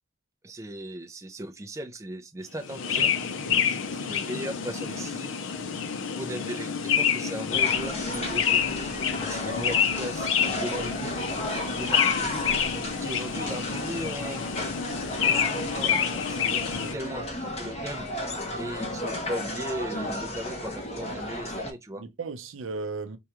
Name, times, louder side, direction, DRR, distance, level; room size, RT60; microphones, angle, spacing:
voice 1, 0.4-3.1 3.6-5.4 6.1-8.9 9.2-11.2 11.8-12.5 13.0-14.4 15.2-18.1 18.5-22.0, right 1 dB, 15° right, 0.4 m, -37 dB
sound 1, 2.6-16.9, left 7 dB, 65° left, 0.5 m, -28 dB
sound 2, 7.5-21.7, left 1 dB, 30° left, 0.9 m, -33 dB
voice 2, 16.5-16.9 22.0-23.2, right 4 dB, 70° right, 0.6 m, -36 dB
4.6 x 2.2 x 2.9 m
head